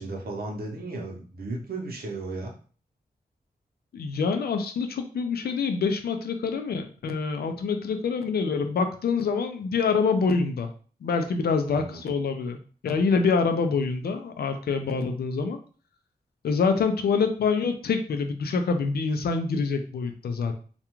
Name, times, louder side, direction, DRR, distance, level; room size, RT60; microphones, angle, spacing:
voice 1, 0.0-2.5 11.7-12.0, right 2 dB, 80° right, 0 dB, 0.8 m, -35 dB
voice 2, 3.9-10.7 11.0-12.6 12.8-15.6 16.4-20.5, left 5 dB, 85° left, 6 dB, 0.4 m, -26 dB
2.4 x 2.2 x 3.0 m, 0.40 s
cardioid pair, 70°, 16 cm